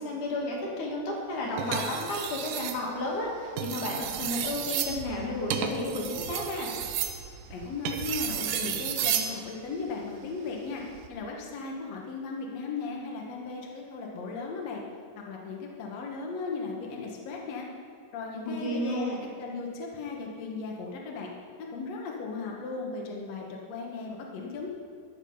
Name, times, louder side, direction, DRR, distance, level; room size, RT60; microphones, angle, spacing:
voice 1, 0.0-6.7 18.5-19.2, left 1 dB, 80° left, -2 dB, 3.5 m, -32 dB
sound 1, 1.6-2.8 3.5-9.4 10.8-11.1, right 8 dB, 85° right, 2.4 m, -32 dB
voice 2, 7.5-10.8 11.1-14.8 15.2-17.7 18.1-19.1 19.4-21.3 21.6-24.7, left 4 dB, 65° left, -1 dB, 2.3 m, -36 dB
13.5 x 8.2 x 5.4 m, 2.3 s
omnidirectional pair, 3.5 m